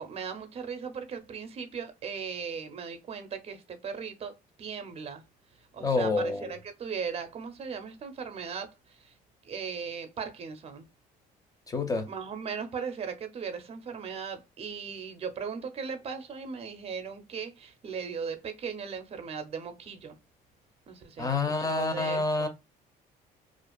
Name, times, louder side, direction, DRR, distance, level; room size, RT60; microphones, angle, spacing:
voice 1, 0.0-5.2 5.7-9.1 9.4-10.9 12.1-20.2 20.9-22.5, right 6 dB, 35° right, 0.6 m, -38 dB
voice 2, 5.8-6.5 11.7-12.1 21.2-22.5, left 3 dB, 20° left, 0.6 m, -28 dB
2.5 x 2.3 x 2.2 m
cardioid pair, 110°, 17 cm